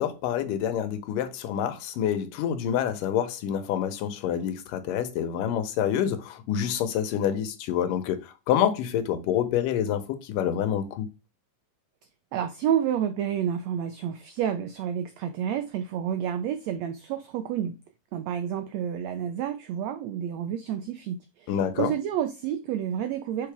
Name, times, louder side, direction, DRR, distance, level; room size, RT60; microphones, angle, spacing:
voice 1, 0.0-11.1 21.5-21.9, left 9 dB, 85° left, 2.5 m, -27 dB
voice 2, 12.3-17.8 18.1-21.5 21.8-23.5, right 9 dB, 85° right, 1.5 m, -29 dB
6.2 x 4.8 x 3.4 m
omnidirectional pair, 3.8 m